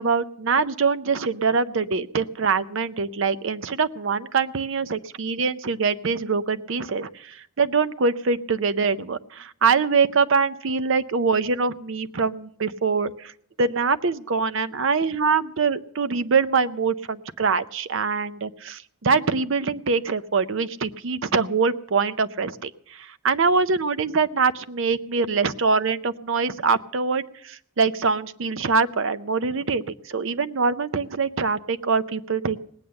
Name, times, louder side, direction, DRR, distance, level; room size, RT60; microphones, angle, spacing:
voice 1, 0.0-13.3 13.6-32.6, right 4 dB, 60° right, 13 dB, 0.6 m, -24 dB
18.5 x 8.7 x 6.5 m, 0.65 s
head